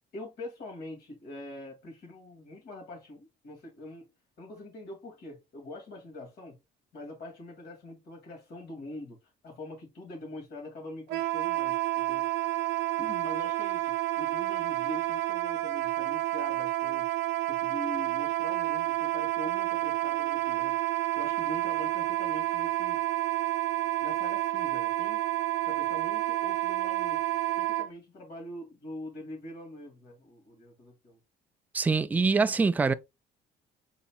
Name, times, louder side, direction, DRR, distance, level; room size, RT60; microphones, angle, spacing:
voice 1, 0.1-4.1 4.4-6.6 6.9-12.3 13.0-17.2 17.5-20.8 21.2-23.0 24.0-25.2 25.6-27.3 27.6-31.2, left 1 dB, 70° left, 2.6 m, -43 dB
Wind instrument woodwind instrument, 11.1-27.9, right 16 dB, 85° right, 0.7 m, -29 dB
voice 2, 31.7-32.9, right 4 dB, 10° right, 0.3 m, -24 dB
5.5 x 4.0 x 2.4 m
cardioid pair, 110°, 17 cm